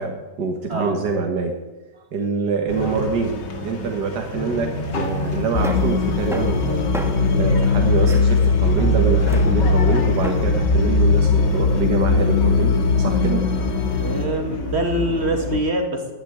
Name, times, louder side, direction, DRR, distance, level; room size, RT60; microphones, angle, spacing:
voice 1, 0.0-1.6 2.1-6.9 7.4-13.5, right 4 dB, 75° right, 2 dB, 2.0 m, -25 dB
sound 1, 2.7-15.6, left 2 dB, 90° left, 2.6 m, -29 dB
sound 2, 4.5-10.4, right 1 dB, ahead, 1.2 m, -33 dB
sound 3, 5.5-14.3, left 3 dB, 50° left, 1.5 m, -19 dB
voice 2, 13.9-16.1, right 1 dB, 40° right, 3 dB, 2.2 m, -24 dB
12.0 x 10.5 x 9.4 m, 1.1 s
omnidirectional pair, 1.8 m